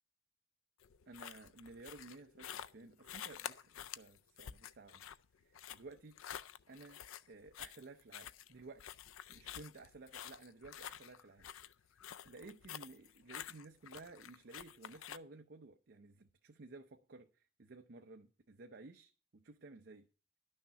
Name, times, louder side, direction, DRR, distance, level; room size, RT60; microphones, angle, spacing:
sound 1, 0.8-15.2, left 10 dB, 80° left, 0.4 m, -50 dB
voice 1, 1.1-5.1 5.4-6.2 6.7-7.0 7.3-9.0 9.3-11.5 11.9-20.1, right 3 dB, 55° right, 0.6 m, -55 dB
11.0 x 6.5 x 5.6 m
head